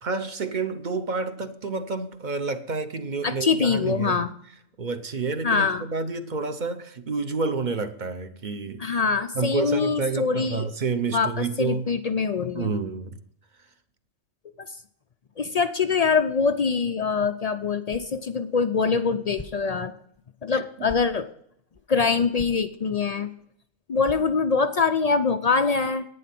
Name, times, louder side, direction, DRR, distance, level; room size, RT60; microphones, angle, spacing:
voice 1, 0.0-4.2 4.8-8.8 9.3-11.8 12.5-13.2 20.5-20.6, right 4 dB, 40° right, 0.8 m, -29 dB
voice 2, 3.2-4.3 5.4-5.9 8.8-10.7 11.1-12.8 14.6-14.8 15.4-19.9 20.4-21.3 21.9-23.3 23.9-26.0, left 5 dB, 60° left, 0.4 m, -24 dB
sound 1, 17.9-18.2 18.6-18.7 19.3-19.6 20.1-20.2 20.8-21.1 21.7-21.8 22.3-22.6 23.0-23.1 23.4-23.5 24.0-24.6, left 3 dB, 10° left, 0.7 m, -42 dB
11.0 x 9.3 x 5.9 m
omnidirectional pair, 1.3 m